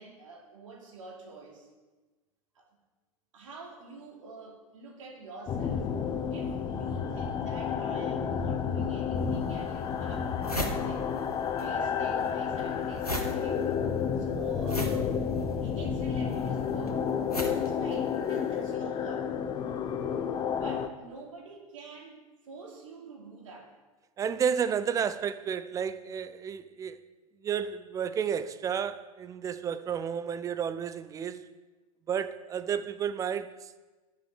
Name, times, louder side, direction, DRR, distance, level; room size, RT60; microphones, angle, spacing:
voice 1, 0.0-1.7 2.5-2.6 3.3-5.9 6.3-11.1 11.5-13.6 14.2-15.2 15.6-17.0 17.4-19.3 20.6-23.8, right 3 dB, 60° right, 3.4 m, -47 dB
sound 1, 5.5-20.9, left 7 dB, 25° left, 1.0 m, -31 dB
sound 2, 9.2-9.3 9.8-9.9 10.1-11.7 11.9-18.5, equal, 90° left, 1.7 m, -37 dB
voice 2, 24.2-27.0 27.4-31.5 32.1-33.8, right 7 dB, 20° right, 0.6 m, -31 dB
11.5 x 7.4 x 8.6 m
figure-of-eight pair, 95°, 19 cm